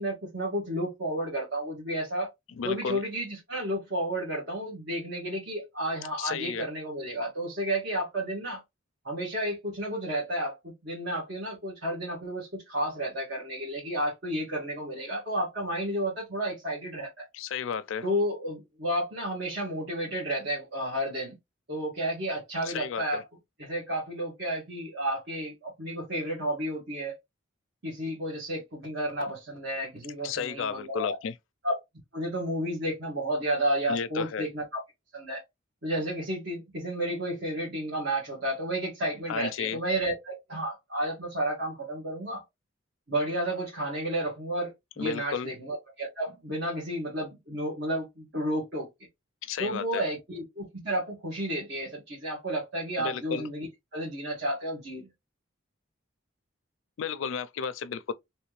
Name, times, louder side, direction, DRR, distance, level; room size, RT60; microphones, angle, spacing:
voice 1, 0.0-2.3 2.6-8.6 9.0-17.2 18.0-21.3 21.7-23.2 23.6-27.2 27.8-31.1 31.6-31.7 32.1-34.8 35.1-35.4 35.8-42.4 43.1-48.9 49.6-55.1, right 1 dB, 60° right, 1.6 m, -32 dB
voice 2, 2.6-3.0 6.2-6.7 17.3-18.1 22.6-23.2 30.2-31.3 33.9-34.5 39.3-39.8 45.0-45.5 49.4-50.0 53.0-53.4 57.0-58.1, left 6 dB, 75° left, 0.4 m, -33 dB
3.2 x 3.0 x 3.1 m
head